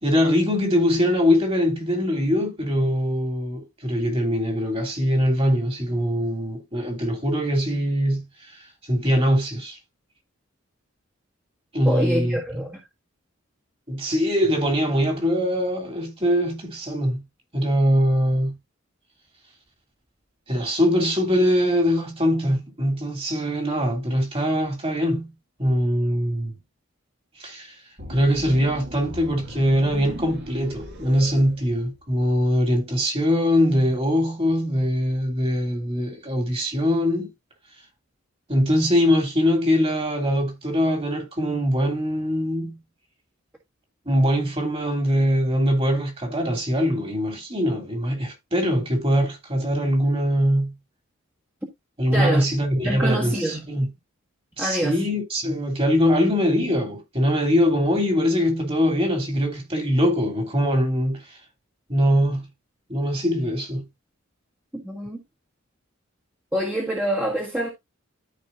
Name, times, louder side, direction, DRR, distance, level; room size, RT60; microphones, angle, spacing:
voice 1, 0.0-8.5 8.9-9.8 11.7-12.4 13.9-17.2 17.5-18.5 20.5-25.3 25.6-26.5 27.4-27.7 28.1-37.3 38.5-42.8 44.1-50.7 52.0-53.9 54.6-61.4 61.9-62.4 62.9-63.8, equal, 25° right, 2.8 m, -22 dB
voice 2, 11.8-12.8 52.1-52.5 52.8-53.7 54.6-55.0 64.7-65.2 66.5-67.7, equal, 10° right, 1.6 m, -26 dB
sound 1, 28.0-32.2, equal, 55° right, 2.4 m, -38 dB
13.5 x 5.1 x 2.6 m
head